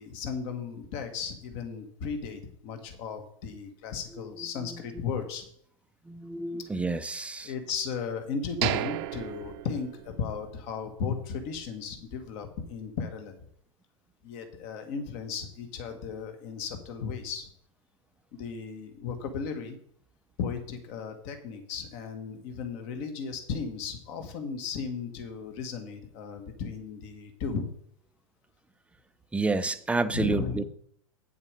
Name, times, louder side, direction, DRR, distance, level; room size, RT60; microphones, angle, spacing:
voice 1, 0.0-5.4 7.4-13.3 14.2-17.5 18.3-19.8 20.4-27.7 30.1-30.6, left 6 dB, 50° left, 6 dB, 1.8 m, -35 dB
voice 2, 6.1-7.5 29.3-30.6, right 3 dB, 5° right, 12 dB, 0.5 m, -29 dB
sound 1, 8.6-10.5 10.9-11.0 11.5-11.7, right 14 dB, 55° right, 0.7 m, -33 dB
8.4 x 7.2 x 5.2 m, 0.65 s
hypercardioid pair, 110°, 17 cm